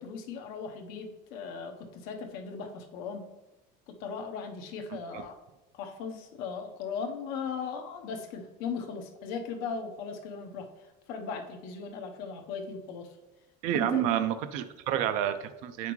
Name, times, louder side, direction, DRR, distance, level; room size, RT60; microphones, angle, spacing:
voice 1, 0.0-3.3 3.9-5.4 5.7-10.7 11.1-13.1 13.7-14.0, left 5 dB, 55° left, 4 dB, 0.9 m, -38 dB
voice 2, 13.6-15.9, right 10 dB, 40° right, 10 dB, 0.4 m, -29 dB
8.0 x 5.9 x 3.1 m, 1.0 s
cardioid pair, 180°, 18 cm